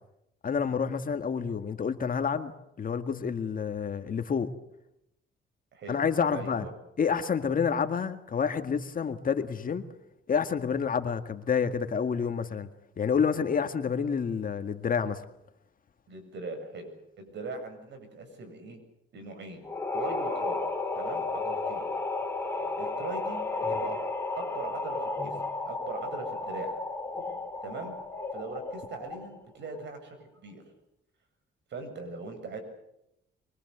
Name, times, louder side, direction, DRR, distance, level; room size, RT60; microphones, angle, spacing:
voice 1, 0.4-2.5 2.8-4.5 5.9-6.7 7.0-9.9 10.3-12.7 13.0-15.2, left 6 dB, 45° left, 2.0 m, -28 dB
voice 2, 5.7-6.0 6.3-6.7 16.1-16.9 17.2-18.8 19.1-19.6 19.9-20.6 20.9-21.9 22.8-24.0 24.4-25.4 25.6-26.7 27.6-28.0 28.3-30.7 31.7-32.6, right 3 dB, 65° right, 7.7 m, -40 dB
sound 1, 19.6-29.4, left 3 dB, 10° left, 4.7 m, -33 dB
24.5 x 24.0 x 8.2 m
cardioid pair, 90°, 20 cm